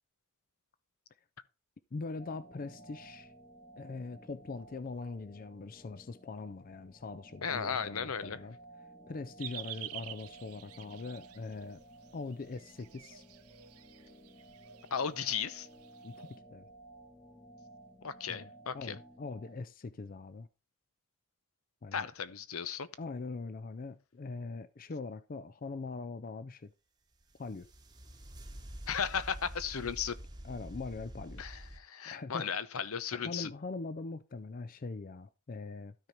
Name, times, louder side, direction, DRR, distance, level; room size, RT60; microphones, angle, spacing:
voice 1, 1.9-3.3 3.8-8.6 9.1-11.8 12.1-13.2 16.0-16.7 18.3-18.5 18.7-20.5 21.8-22.1 23.0-26.7 27.4-27.7 29.8-29.9 30.4-31.4 32.1-32.5 33.1-35.9, left 3 dB, 40° left, 0.4 m, -42 dB
sound 1, 2.2-19.5, right 1 dB, 20° left, 1.3 m, -56 dB
voice 2, 7.4-8.4 14.9-15.7 18.0-18.9 21.9-22.9 28.9-30.1 31.4-33.5, left 7 dB, 75° left, 0.8 m, -35 dB
sound 2, 9.4-16.4, right 12 dB, 85° right, 0.8 m, -49 dB
sound 3, 27.2-31.8, right 1 dB, 20° right, 1.1 m, -47 dB
13.0 x 4.5 x 5.2 m
head